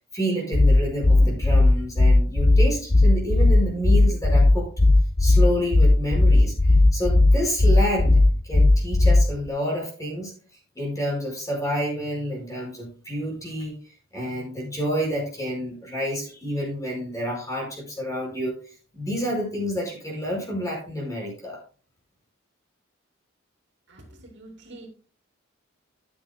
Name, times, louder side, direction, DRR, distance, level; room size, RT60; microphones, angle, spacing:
voice 1, 0.1-4.7 5.2-10.3 10.8-13.8 14.1-18.5 18.9-21.6, equal, 15° left, 5.2 m, -29 dB
sound 1, 0.5-9.5, left 2 dB, 35° left, 0.9 m, -16 dB
voice 2, 23.9-24.9, right 2 dB, 60° right, 3.0 m, -45 dB
14.0 x 9.7 x 2.2 m
head